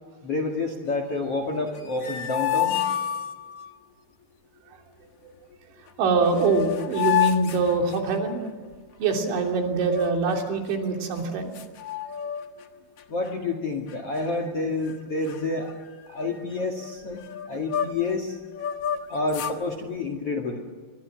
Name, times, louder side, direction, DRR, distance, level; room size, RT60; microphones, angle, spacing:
voice 1, 0.2-2.8 13.1-15.7 16.1-17.2 17.5-18.3 19.1-20.6, left 3 dB, 45° left, 6 dB, 2.2 m, -28 dB
sound 1, 1.7-3.7 5.9-6.0 6.2-8.5 9.8-10.6 11.2-11.3 11.5-12.7 13.0-13.3 13.9-14.5 14.8-15.0 15.2-18.1 18.5-19.6, left 10 dB, 90° left, 1.3 m, -30 dB
voice 2, 6.0-8.4 9.0-11.5, right 4 dB, 90° right, 2 dB, 5.4 m, -24 dB
28.0 x 23.5 x 7.7 m, 1.5 s
omnidirectional pair, 5.2 m